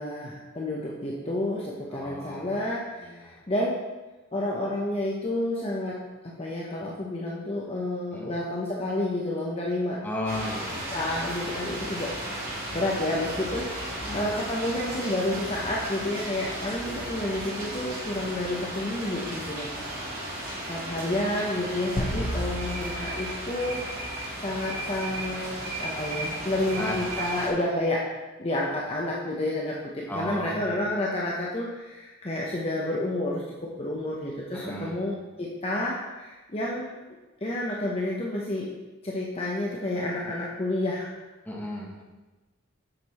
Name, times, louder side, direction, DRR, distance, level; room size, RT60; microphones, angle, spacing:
voice 1, 0.0-3.7 4.3-10.0 10.9-13.8 14.1-19.8 20.7-23.8 24.4-28.0 28.4-36.9 37.4-38.7 39.0-41.2, left 1 dB, 30° left, -4 dB, 0.8 m, -30 dB
voice 2, 1.9-2.5 3.0-3.4 8.1-8.3 10.0-10.9 14.0-14.3 20.9-21.2 26.8-27.2 30.1-30.7 34.5-35.0 41.4-42.0, left 1 dB, 10° left, -3 dB, 1.4 m, -35 dB
sound 1, 10.2-27.5, right 1 dB, 45° right, 3.1 m, -35 dB
sound 2, 22.0-24.5, left 1 dB, 60° left, 1.0 m, -33 dB
7.9 x 6.6 x 4.2 m, 1.2 s
head